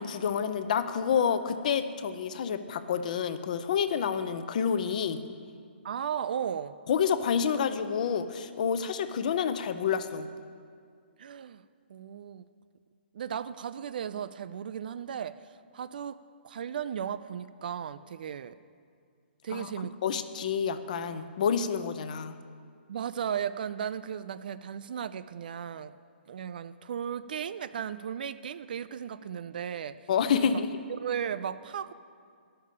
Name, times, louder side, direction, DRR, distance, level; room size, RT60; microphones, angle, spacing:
voice 1, 0.0-5.2 6.9-10.3 19.5-19.7 20.0-22.3 30.1-30.7, left 7 dB, 40° left, 11 dB, 0.6 m, -28 dB
voice 2, 5.8-6.7 11.2-11.6 11.9-12.5 13.1-15.4 15.7-16.2 16.4-18.6 19.4-19.9 22.9-25.9 26.3-30.0 30.3-30.5 31.0-31.9, right 8 dB, 50° right, 14 dB, 0.3 m, -35 dB
10.0 x 6.7 x 8.3 m, 2.2 s
hypercardioid pair, 165°, 6 cm